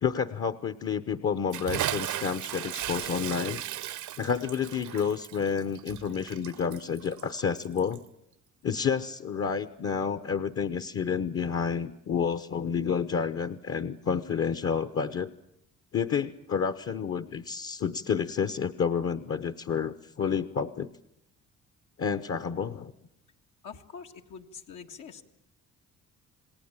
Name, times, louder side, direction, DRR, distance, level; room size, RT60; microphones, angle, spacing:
voice 1, 0.0-3.6 4.2-8.0 8.6-15.3 15.9-20.9 22.0-22.9, left 6 dB, 50° left, 11 dB, 1.0 m, -30 dB
Bathtub (filling or washing) / Splash splatter, 1.5-8.1, right 12 dB, 75° right, 0.9 m, -36 dB
voice 2, 23.6-25.2, left 6 dB, 80° left, 2 dB, 1.9 m, -45 dB
28.5 x 19.0 x 8.9 m, 0.82 s
cardioid pair, 90°, 30 cm